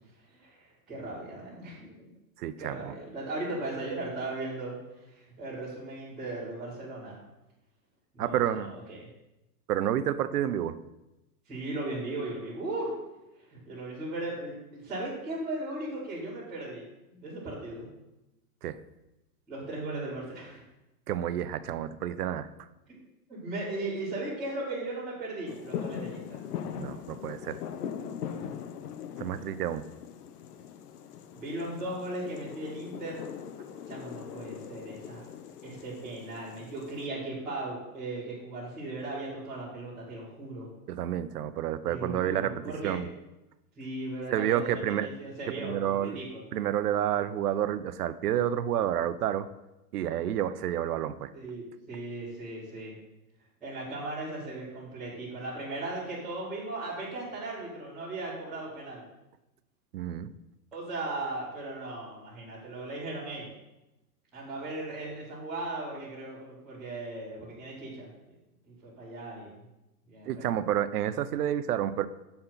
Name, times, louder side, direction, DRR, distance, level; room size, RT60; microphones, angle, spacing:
voice 1, 0.3-1.9 2.6-7.2 8.1-9.0 11.5-12.9 13.5-17.9 19.5-20.6 22.9-23.0 23.3-26.4 31.3-33.2 33.9-35.3 35.6-40.7 41.9-43.0 43.8-46.4 51.3-52.9 53.6-59.0 60.7-63.5 64.3-68.1 68.7-69.6 70.1-70.4, right 2 dB, ahead, -18 dB, 0.4 m, -37 dB
voice 2, 2.4-2.9 8.2-8.7 9.7-10.8 18.6-18.8 21.1-22.5 26.8-27.6 29.2-29.9 40.9-43.1 44.3-45.1 45.6-46.2 46.5-49.5 49.9-51.3 59.9-60.3 70.3-72.1, right 11 dB, 80° right, 13 dB, 0.7 m, -29 dB
sound 1, 25.5-37.1, left 8 dB, 80° left, 0.8 m, -41 dB
7.8 x 4.3 x 5.7 m, 0.97 s
hypercardioid pair, 160°, 46 cm